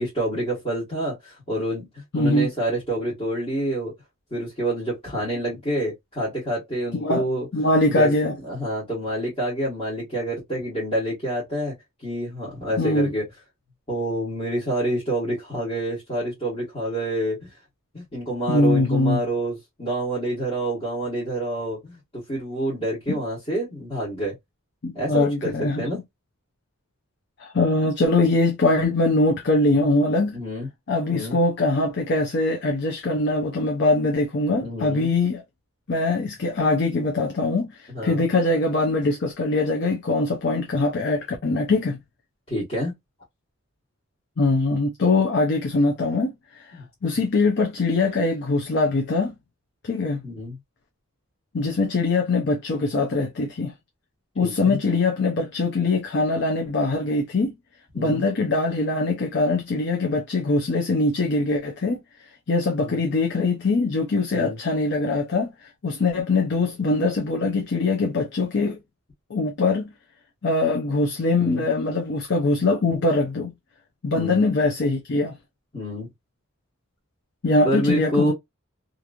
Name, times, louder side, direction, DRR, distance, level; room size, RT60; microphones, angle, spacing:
voice 1, 0.0-3.9 4.3-7.5 7.9-11.7 12.0-13.2 13.9-17.5 17.9-24.4 24.9-26.0 30.3-30.7 31.1-31.4 34.5-35.1 37.9-38.2 42.5-42.9 46.7-46.8 50.2-50.6 54.4-54.8 57.9-58.2 62.8-63.0 64.3-64.6 71.4-71.6 74.1-74.4 75.7-76.1 77.6-78.3, right 1 dB, 30° left, 1.2 m, -28 dB
voice 2, 2.1-2.5 7.0-7.2 7.5-8.3 12.8-13.1 18.5-19.2 23.1-23.2 24.8-25.8 27.4-30.4 30.9-35.4 35.9-42.0 44.4-46.8 47.0-49.4 49.8-50.2 51.5-53.7 54.4-57.5 58.0-62.0 62.5-68.8 69.3-69.9 70.4-73.5 74.0-75.4 77.4-78.3, left 2 dB, 55° left, 0.5 m, -22 dB
2.9 x 2.5 x 2.3 m
head